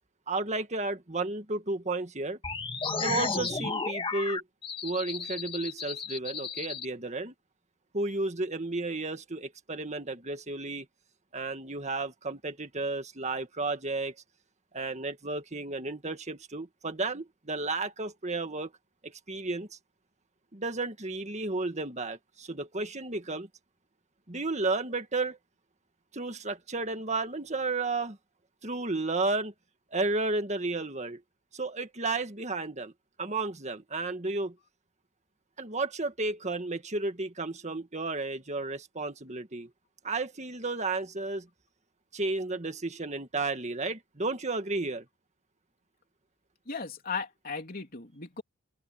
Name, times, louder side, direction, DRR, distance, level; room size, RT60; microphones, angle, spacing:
voice 1, 0.3-2.4 3.0-4.4 4.8-7.3 7.9-10.9 11.3-14.1 14.7-18.7 19.0-19.7 20.5-23.5 24.3-25.4 26.1-28.2 28.6-29.5 29.9-31.2 31.5-32.9 33.2-34.5 35.6-39.7 40.0-41.5 42.1-45.1, right 3 dB, 30° right, 1.8 m, -32 dB
sound 1, 2.4-6.9, left 4 dB, 25° left, 1.8 m, -33 dB
voice 2, 46.7-48.4, left 5 dB, 45° left, 3.2 m, -36 dB
open air
head